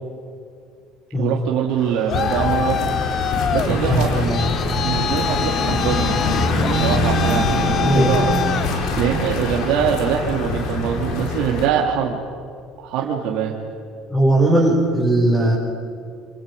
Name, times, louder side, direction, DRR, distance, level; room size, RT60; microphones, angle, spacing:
voice 1, 1.2-2.8 3.5-4.1 4.8-6.2 6.6-8.4 9.0-12.2 12.8-13.5, right 8 dB, 70° right, -1 dB, 2.5 m, -23 dB
Traffic noise roadway noise, 1.7-9.4, left 7 dB, 35° left, 0.6 m, -26 dB
sound 1, 2.1-11.7, left 2 dB, 65° left, 4.0 m, -23 dB
voice 2, 3.6-4.3 7.8-8.1 14.1-15.6, right 1 dB, 5° left, -7 dB, 6.4 m, -18 dB
27.5 x 25.5 x 5.3 m, 2.3 s
cardioid pair, 130°, 0 cm